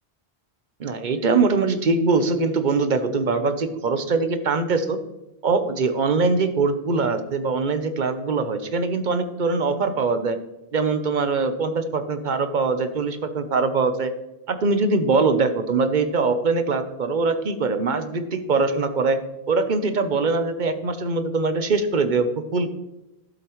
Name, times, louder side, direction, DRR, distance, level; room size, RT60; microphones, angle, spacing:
voice 1, 0.8-5.0 5.4-10.4 10.7-14.1 14.5-19.2 19.5-22.7, right 4 dB, 50° right, 9 dB, 0.9 m, -22 dB
12.0 x 8.0 x 3.1 m, 0.94 s
omnidirectional pair, 1.1 m